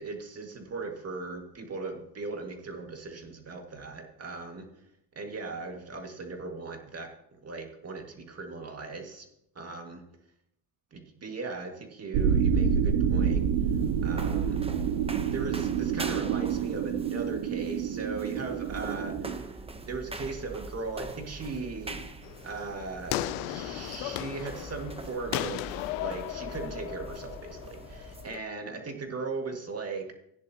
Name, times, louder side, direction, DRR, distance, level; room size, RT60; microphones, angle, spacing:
voice 1, 0.0-4.7 5.2-7.1 7.4-9.3 9.6-10.0 10.9-13.4 14.0-14.6 15.3-19.5 19.8-22.1 22.4-30.1, right 3 dB, 30° right, 3 dB, 2.2 m, -38 dB
sound 1, 12.1-19.4, right 7 dB, 70° right, 1.0 m, -28 dB
sound 2, 13.2-28.4, right 2 dB, 10° right, 1.0 m, -43 dB
sound 3, 22.2-28.4, left 16 dB, 80° left, 0.7 m, -36 dB
15.0 x 10.0 x 3.0 m, 0.79 s
supercardioid pair, 95°, 48 cm